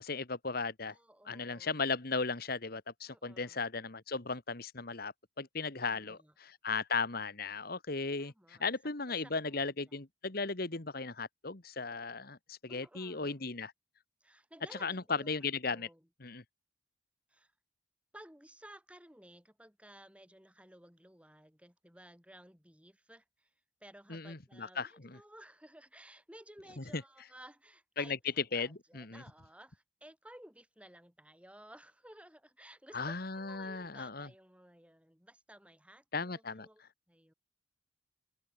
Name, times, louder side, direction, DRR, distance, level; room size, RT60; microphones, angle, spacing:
voice 1, 0.0-1.0 1.2-13.7 14.8-15.9 16.2-16.4 24.1-25.2 26.8-27.0 28.0-28.7 28.9-29.2 32.9-34.3 36.1-36.7, left 4 dB, 50° left, 1.6 m, -36 dB
voice 2, 0.9-1.8 3.1-3.6 5.8-6.3 8.2-8.6 9.1-9.6 9.8-10.0 12.7-13.4 14.2-15.3 15.7-16.1 17.3-17.5 18.1-23.5 23.8-28.2 28.5-36.8 37.1-37.3, right 1 dB, 5° right, 5.0 m, -56 dB
head